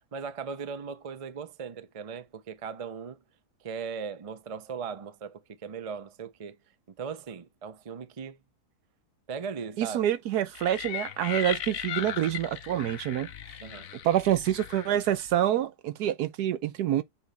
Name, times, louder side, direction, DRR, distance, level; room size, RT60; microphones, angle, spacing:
voice 1, 0.1-3.2 3.6-6.6 7.0-8.4 9.3-10.1 13.6-13.9, right 6 dB, 40° right, 0.5 m, -38 dB
voice 2, 9.8-13.3 14.0-17.0, right 11 dB, 75° right, 1.2 m, -27 dB
sound 1, 10.5-15.4, left 10 dB, 65° left, 1.0 m, -38 dB
7.1 x 4.1 x 3.4 m
omnidirectional pair, 1.7 m